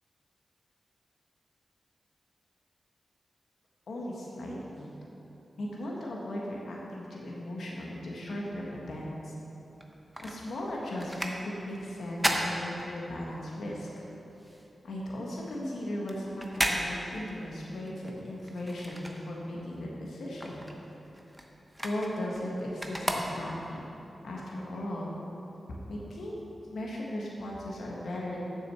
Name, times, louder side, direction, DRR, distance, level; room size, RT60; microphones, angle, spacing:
voice 1, 3.9-4.9 5.6-9.3 10.2-14.1 14.8-20.7 21.8-23.8 24.2-25.2 25.9-26.4 26.7-28.5, left 1 dB, 80° left, -3 dB, 1.4 m, -37 dB
sound 1, 9.7-13.4 13.8-19.7 20.0-23.8 24.4-24.5, equal, 5° right, 1.0 m, -35 dB
7.6 x 6.3 x 6.8 m, 3.0 s
cardioid pair, 75°, 0 cm